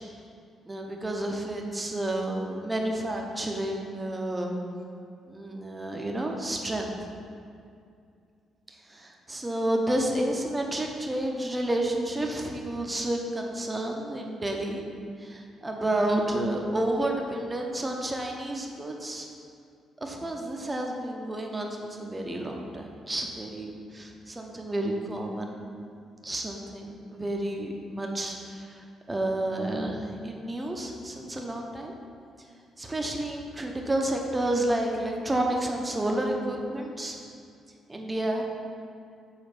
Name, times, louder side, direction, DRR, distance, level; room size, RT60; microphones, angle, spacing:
voice 1, 0.6-4.6 5.3-6.9 8.7-14.9 15.2-19.3 20.0-25.6 26.2-31.9 32.8-37.2 37.9-38.4, right 1 dB, 15° right, 1 dB, 0.8 m, -30 dB
5.4 x 4.0 x 5.8 m, 2.4 s
cardioid pair, 90°, 0 cm